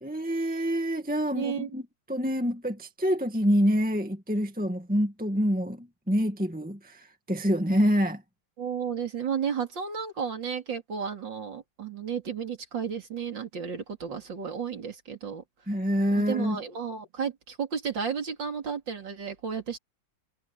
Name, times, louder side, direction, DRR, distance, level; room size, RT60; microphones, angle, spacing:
voice 1, 0.0-1.8 2.1-8.2 15.7-16.6, equal, 5° right, 1.7 m, -26 dB
voice 2, 1.4-1.7 8.6-15.4 16.2-19.8, right 7 dB, 70° right, 3.5 m, -33 dB
omnidirectional pair, 2.1 m